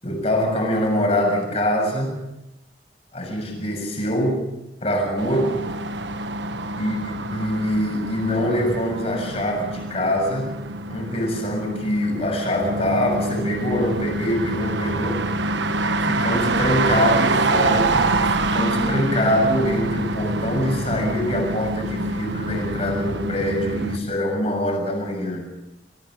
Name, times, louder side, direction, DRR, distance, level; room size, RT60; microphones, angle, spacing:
voice 1, 0.0-2.1 3.1-4.4 4.8-5.6 6.8-7.0 7.3-10.5 10.9-15.2 16.0-25.5, equal, 35° left, 2 dB, 6.8 m, -24 dB
sound 1, 5.2-24.0, right 2 dB, 90° right, 1.2 m, -25 dB
24.5 x 16.5 x 6.4 m, 0.89 s
head